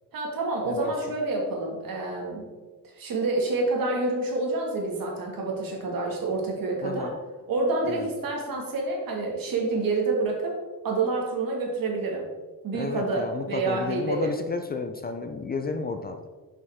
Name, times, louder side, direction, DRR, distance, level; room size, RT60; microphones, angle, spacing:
voice 1, 0.1-2.5 2.9-7.2 7.5-10.6 10.8-12.3 12.6-14.3, right 3 dB, 65° right, -1 dB, 1.9 m, -28 dB
voice 2, 6.8-7.2 7.9-8.1 12.7-16.3, left 4 dB, 25° left, 6 dB, 0.4 m, -32 dB
6.7 x 5.6 x 3.5 m, 1.3 s
cardioid pair, 125°, 37 cm